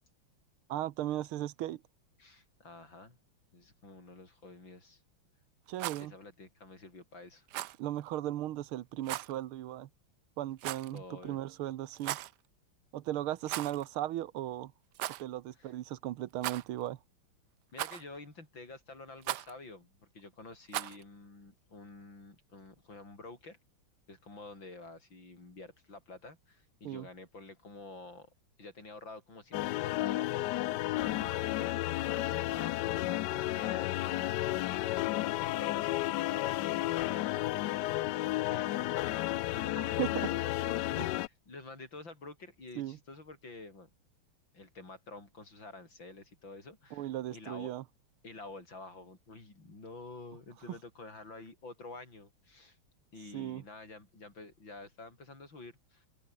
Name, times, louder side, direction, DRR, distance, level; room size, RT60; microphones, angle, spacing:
voice 1, 0.7-1.8 5.7-6.1 7.8-9.9 10.4-12.2 12.9-14.7 15.2-17.0 26.8-27.1 39.7-40.3 41.0-41.1 42.8-43.0 46.9-47.8 53.3-53.6, right 13 dB, 85° right, 1.8 m, -37 dB
voice 2, 2.2-3.2 3.5-5.0 6.0-7.5 10.9-11.4 15.5-15.7 17.7-23.6 24.1-28.3 28.6-30.8 31.1-43.9 44.5-47.7 48.2-52.8 53.1-56.1, left 2 dB, 60° left, 6.6 m, -49 dB
Rattle, 5.7-6.1 7.5-7.8 9.0-9.3 10.6-11.0 11.9-12.3 13.4-13.9 14.1-14.2 14.9-15.2 16.4-16.9 17.8-18.2 19.2-19.5 20.7-21.0, right 14 dB, 70° right, 1.0 m, -37 dB
sound 1, 29.5-41.3, left 17 dB, 80° left, 0.9 m, -32 dB
open air
omnidirectional pair, 2.3 m